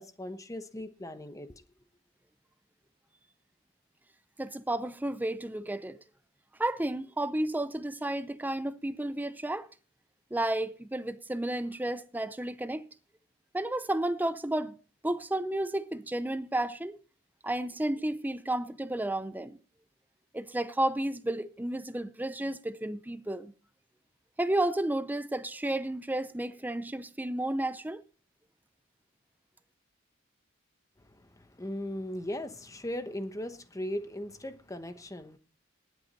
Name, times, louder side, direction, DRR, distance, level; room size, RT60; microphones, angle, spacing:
voice 1, 0.0-1.6 31.0-35.4, left 1 dB, 15° left, 1.0 m, -38 dB
voice 2, 4.4-6.0 6.6-9.7 10.3-12.9 13.5-14.8 15.0-17.0 17.4-19.6 20.3-23.5 24.4-28.0, right 1 dB, 10° right, 0.5 m, -32 dB
18.5 x 8.2 x 4.2 m
head